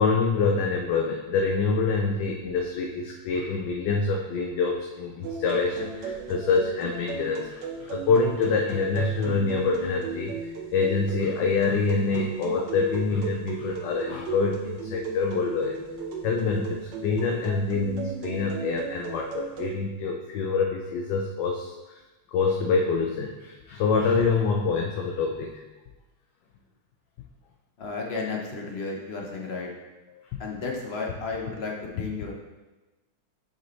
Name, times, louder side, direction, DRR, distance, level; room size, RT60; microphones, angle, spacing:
voice 1, 0.0-15.8 16.2-22.0 22.3-25.6, left 4 dB, 75° left, 1 dB, 1.2 m, -26 dB
sound 1, 5.2-19.7, right 4 dB, 70° right, 1.4 m, -36 dB
voice 2, 27.8-29.7 30.4-32.4, left 4 dB, 50° left, 0 dB, 0.8 m, -33 dB
7.2 x 5.1 x 3.1 m, 1.1 s
omnidirectional pair, 2.1 m